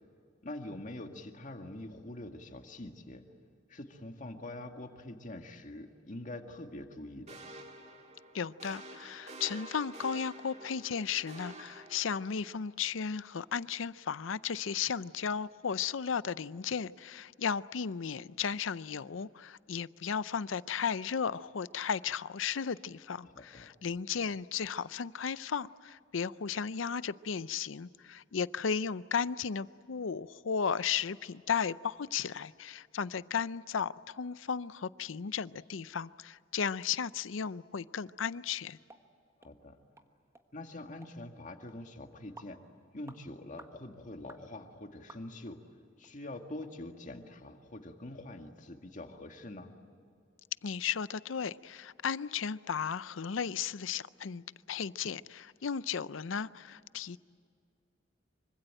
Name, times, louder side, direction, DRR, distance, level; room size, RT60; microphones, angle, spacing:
voice 1, 0.4-3.2 3.7-7.4 23.3-23.7 39.4-39.8 40.5-42.6 42.9-45.6 46.0-49.7, left 1 dB, 40° left, 2.0 m, -45 dB
sound 1, 7.3-12.6, right 1 dB, 35° right, 2.1 m, -49 dB
voice 2, 8.3-38.8 50.6-57.2, left 6 dB, 80° left, 0.6 m, -35 dB
sound 2, 38.9-39.0 39.4-39.5 40.0-40.1 40.3-40.5 41.0-41.2 41.7-41.8 42.4-42.6 43.1-43.2 43.6-43.8 44.3-44.4 45.1-45.5 46.0-46.1 46.6-46.7 47.2-47.3, right 2 dB, 15° right, 1.3 m, -54 dB
25.5 x 24.5 x 9.0 m
head